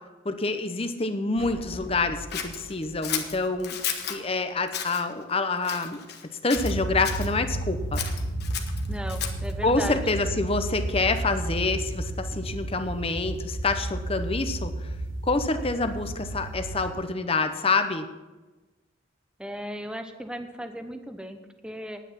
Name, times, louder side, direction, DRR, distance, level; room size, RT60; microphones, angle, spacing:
voice 1, 0.2-3.8 4.1-6.0 6.4-8.0 9.6-14.7 15.2-18.1, left 3 dB, 30° left, 9 dB, 0.8 m, -27 dB
sound 1, 1.4-4.8, equal, 30° right, 2.1 m, -44 dB
Scissors, 2.3-4.2 4.7-5.0 5.6-6.2 6.5-7.3 7.9-9.5, left 8 dB, 55° left, 1.2 m, -33 dB
sound 2, 6.5-16.9, right 1 dB, 80° right, 3.0 m, -32 dB
voice 2, 8.9-10.0 19.4-22.0, equal, 5° right, 7 dB, 0.8 m, -36 dB
10.5 x 9.3 x 5.9 m, 1.2 s
head